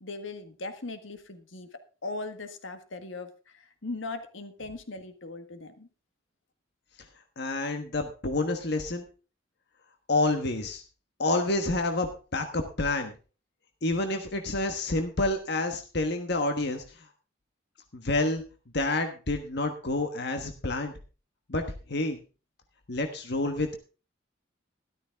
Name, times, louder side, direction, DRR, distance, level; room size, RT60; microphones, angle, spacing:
voice 1, 0.0-1.7 2.0-5.9, left 3 dB, 75° left, 8 dB, 1.6 m, -39 dB
voice 2, 7.4-9.0 10.1-10.8 11.2-13.1 13.8-16.8 17.9-18.4 18.7-20.9 21.5-21.6 21.9-22.2 22.9-23.8, left 2 dB, 60° left, 5 dB, 1.4 m, -28 dB
13.0 x 12.5 x 3.5 m, 0.34 s
head